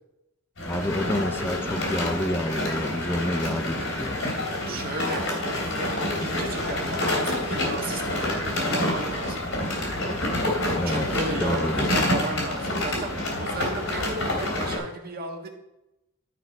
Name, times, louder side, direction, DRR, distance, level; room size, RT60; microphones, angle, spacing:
sound 1, 0.6-14.8, left 1 dB, 85° left, 3.2 m, -27 dB
voice 1, 0.6-4.2 10.8-11.1 11.4-11.9, left 1 dB, 10° left, 6 dB, 0.4 m, -29 dB
voice 2, 4.6-10.2 10.8-15.5, right 2 dB, 50° right, 2 dB, 1.4 m, -35 dB
12.0 x 4.4 x 5.3 m, 0.91 s
head